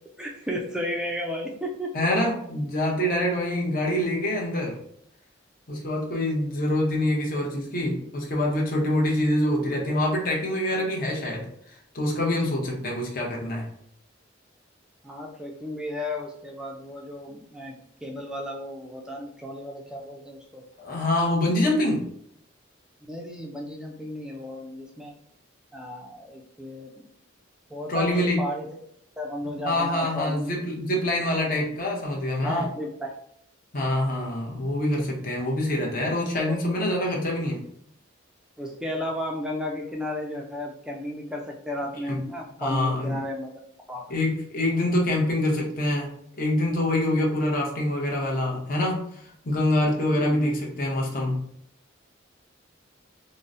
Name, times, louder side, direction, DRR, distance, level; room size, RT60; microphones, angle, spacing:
voice 1, 0.2-1.9 15.0-20.6 23.1-25.1 25.7-26.9 27.7-28.7 29.2-30.5 31.4-31.5 32.4-33.1 36.4-36.6 38.6-43.5 43.9-44.1 50.1-50.5, left 1 dB, 5° right, 0 dB, 0.3 m, -33 dB
voice 2, 1.9-4.8 5.7-11.5 11.9-13.6 20.8-22.0 27.9-28.4 29.6-32.7 33.7-37.6 42.1-42.2 42.6-43.1 44.1-46.1 46.4-51.4, left 1 dB, 45° left, -2 dB, 0.7 m, -25 dB
3.8 x 2.0 x 2.5 m, 0.70 s
head